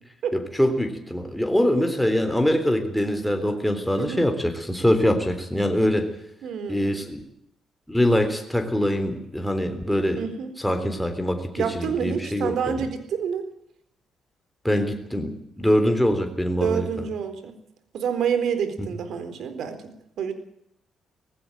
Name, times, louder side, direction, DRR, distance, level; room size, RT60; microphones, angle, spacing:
voice 1, 0.3-6.1 6.7-7.2 7.9-10.2 10.6-12.9 14.6-16.9 18.8-18.9, equal, 5° left, 6 dB, 3.6 m, -23 dB
voice 2, 6.4-7.0 10.2-10.5 11.6-13.4 16.6-17.6 17.9-20.3, right 7 dB, 70° right, 10 dB, 4.0 m, -28 dB
19.0 x 16.0 x 9.1 m, 0.75 s
cardioid pair, 90°, 0 cm